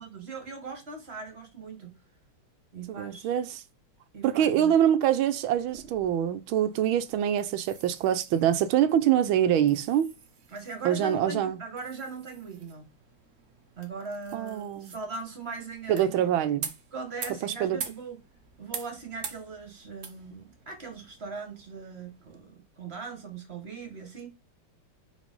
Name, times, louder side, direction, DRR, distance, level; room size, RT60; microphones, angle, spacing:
voice 1, 0.0-2.0 2.7-3.4 4.1-4.8 10.5-12.9 13.8-16.2 16.9-18.2 18.6-24.3, right 4 dB, 35° right, 1.5 m, -40 dB
voice 2, 2.9-3.6 4.2-10.1 10.8-11.6 14.3-14.9 15.9-16.7 17.4-17.8, right 10 dB, 75° right, 1.4 m, -25 dB
sound 1, 5.5-22.4, right 5 dB, 55° right, 0.7 m, -46 dB
5.1 x 4.0 x 5.3 m
omnidirectional pair, 2.4 m